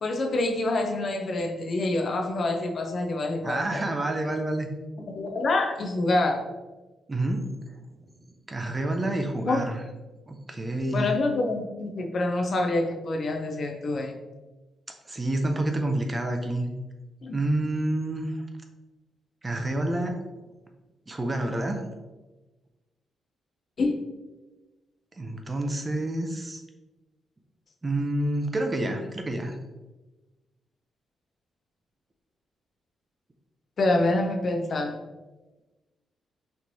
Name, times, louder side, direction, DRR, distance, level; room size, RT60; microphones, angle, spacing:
voice 1, 0.0-3.8 5.1-6.4 9.4-9.6 10.9-14.1 17.2-17.4 23.8-24.0 33.8-34.9, left 2 dB, 45° left, 3 dB, 0.5 m, -26 dB
voice 2, 3.4-4.7 7.1-7.4 8.5-9.8 10.3-11.1 15.1-16.7 17.3-18.3 19.4-20.2 21.1-21.8 25.2-26.6 27.8-29.5, right 1 dB, 20° right, 4 dB, 0.4 m, -28 dB
4.4 x 3.0 x 2.6 m, 1.1 s
cardioid pair, 130°, 0 cm